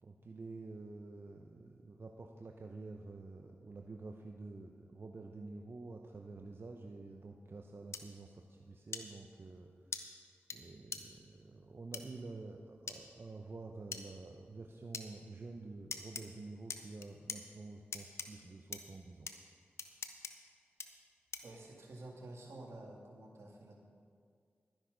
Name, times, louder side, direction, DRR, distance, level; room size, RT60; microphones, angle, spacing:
voice 1, 0.0-10.1 10.5-19.3, right 3 dB, 55° right, 2 dB, 0.8 m, -49 dB
sound 1, 7.9-8.0 8.9-9.0 9.9-10.0 10.5-10.6 10.9-11.0 11.9-12.0 12.9-13.0 13.9-14.0 14.9-15.1 15.9-16.2 16.7-17.4 17.9-18.3 18.7-18.8 19.3-19.4 19.8-20.3 20.8-20.9 21.3-21.6, left 5 dB, 80° left, 0.8 m, -41 dB
voice 2, 21.4-23.8, right 2 dB, 80° right, -1 dB, 2.2 m, -50 dB
12.0 x 10.5 x 5.2 m, 2.1 s
cardioid pair, 45°, 5 cm